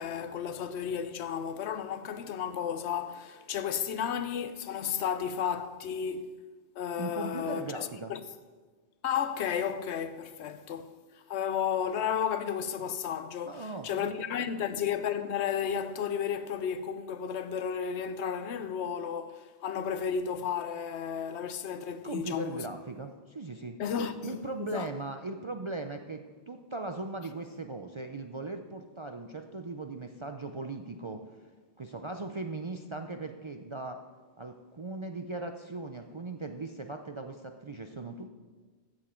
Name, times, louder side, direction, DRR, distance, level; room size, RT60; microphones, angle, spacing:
voice 1, 0.0-6.3 6.8-8.2 9.0-10.9 11.3-22.7 23.8-24.9, left 8 dB, 75° left, 0.9 m, -33 dB
voice 2, 7.0-8.1 13.4-14.6 22.0-23.8 24.2-31.2 31.8-34.0 34.4-38.3, right 3 dB, 40° right, 0.4 m, -39 dB
15.0 x 7.4 x 4.4 m
omnidirectional pair, 1.2 m